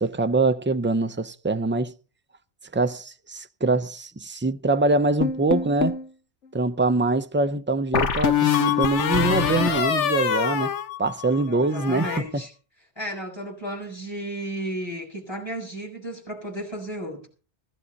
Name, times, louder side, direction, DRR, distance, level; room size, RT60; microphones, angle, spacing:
voice 1, 0.0-1.9 2.7-6.0 6.5-10.7 11.0-12.4, right 3 dB, 15° right, 0.4 m, -24 dB
sound 1, 5.2-6.1 7.9-11.4 11.7-12.2, left 8 dB, 85° left, 1.3 m, -24 dB
voice 2, 11.4-12.5 13.0-17.3, right 1 dB, 20° left, 7.0 m, -34 dB
17.0 x 15.0 x 4.0 m
omnidirectional pair, 1.2 m